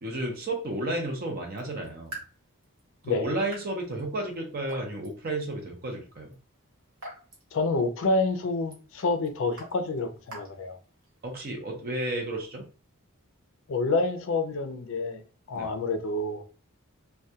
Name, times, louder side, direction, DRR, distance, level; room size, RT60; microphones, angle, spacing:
voice 1, 0.0-2.2 3.1-6.3 11.2-12.6 15.5-15.7, right 1 dB, 45° right, 0.5 m, -32 dB
Raindrop / Drip, 1.4-11.3, right 1 dB, 60° right, 1.1 m, -49 dB
voice 2, 7.5-10.8 13.7-15.2 15.5-16.4, left 3 dB, 60° left, 0.4 m, -28 dB
2.2 x 2.2 x 2.7 m
head